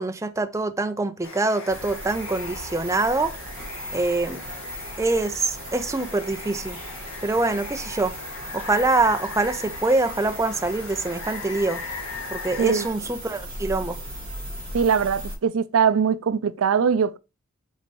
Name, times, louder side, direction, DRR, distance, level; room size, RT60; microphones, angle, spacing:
voice 1, 0.0-3.3 3.9-4.4 5.0-6.8 7.2-8.2 8.5-11.8 12.3-14.0, right 2 dB, 15° right, 0.4 m, -24 dB
Water, 1.2-12.9, left 4 dB, 75° left, 2.1 m, -39 dB
sound 1, 1.7-15.4, right 1 dB, 30° right, 3.5 m, -38 dB
voice 2, 14.7-17.2, right 6 dB, 75° right, 0.4 m, -21 dB
6.5 x 5.4 x 3.1 m
head